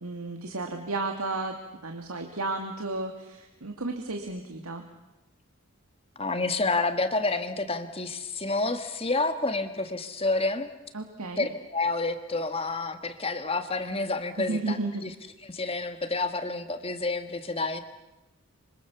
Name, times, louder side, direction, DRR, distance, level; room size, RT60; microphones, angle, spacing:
voice 1, 0.0-4.9 10.9-11.5 14.4-15.1, right 2 dB, 85° right, 3 dB, 2.2 m, -33 dB
voice 2, 6.2-10.7 11.4-15.1 15.4-17.8, left 3 dB, 25° left, 9 dB, 1.7 m, -29 dB
26.0 x 25.0 x 7.0 m, 1.0 s
head